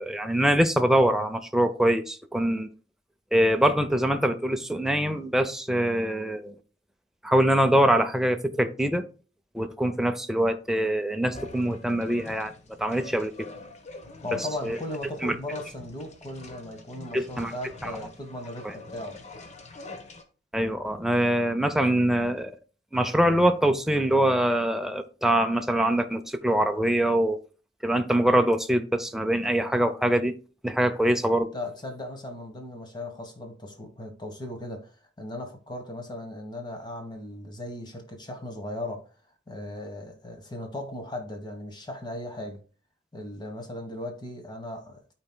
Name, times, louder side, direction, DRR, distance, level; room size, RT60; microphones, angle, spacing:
voice 1, 0.0-2.7 3.3-6.5 7.2-9.0 9.5-12.5 12.8-13.5 14.6-14.8 15.2-15.3 17.1-17.5 17.8-17.9 18.6-18.7 20.5-22.5 22.9-27.4 27.8-30.3 30.6-31.5, right 1 dB, ahead, 0.5 m, -24 dB
sound 1, 11.3-20.2, left 2 dB, 40° left, 1.0 m, -45 dB
voice 2, 14.2-19.2 31.5-34.9 35.2-39.0 39.5-42.6 43.1-45.1, left 1 dB, 25° left, 1.2 m, -37 dB
13.0 x 4.4 x 2.2 m
head